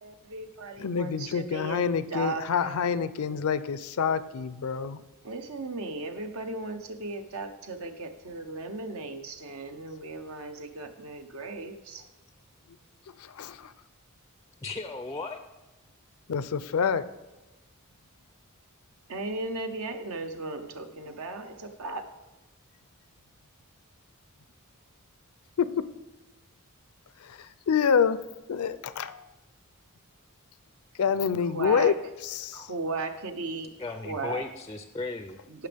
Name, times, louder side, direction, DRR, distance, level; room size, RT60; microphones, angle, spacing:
voice 1, 0.0-2.7 5.2-12.1 19.1-22.0 31.4-31.9 32.5-34.5 35.5-35.7, right 3 dB, 70° right, 6 dB, 0.8 m, -36 dB
voice 2, 0.8-5.0 13.2-13.7 16.3-17.0 25.6-25.8 27.3-27.4 27.7-28.2 28.5-29.2 31.0-32.7, left 6 dB, 75° left, 15 dB, 0.5 m, -27 dB
voice 3, 14.6-15.4 33.8-35.4, left 3 dB, 15° left, 7 dB, 0.4 m, -35 dB
16.0 x 5.9 x 3.5 m, 1.1 s
head